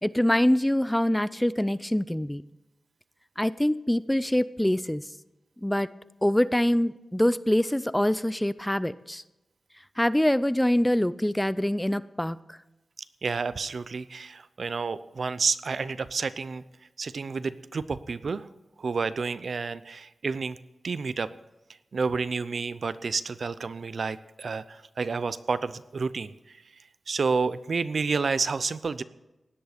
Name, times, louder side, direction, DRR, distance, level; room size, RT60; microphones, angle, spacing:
voice 1, 0.0-2.4 3.4-5.0 5.6-5.9 6.2-9.2 10.0-12.6, left 1 dB, 10° left, 17 dB, 0.4 m, -24 dB
voice 2, 13.2-16.6 17.0-18.5 18.8-20.6 20.8-21.3 21.9-26.3 27.1-29.0, right 4 dB, 65° right, 15 dB, 0.6 m, -30 dB
17.0 x 11.0 x 5.1 m, 0.99 s
wide cardioid pair, 80°, 0 cm